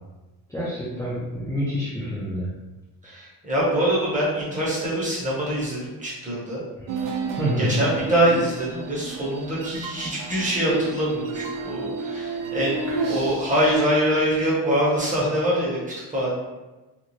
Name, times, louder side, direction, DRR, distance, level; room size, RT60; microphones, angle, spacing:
voice 1, 0.5-2.5 7.3-7.8 12.9-13.0, equal, 10° left, -10 dB, 0.6 m, -27 dB
voice 2, 3.0-6.6 7.6-12.8 13.1-16.3, right 1 dB, 20° right, -7 dB, 1.0 m, -24 dB
sound 1, 6.9-13.7, right 3 dB, 55° right, 0.5 m, -31 dB
2.6 x 2.3 x 3.0 m, 1.1 s
cardioid pair, 120°, 39 cm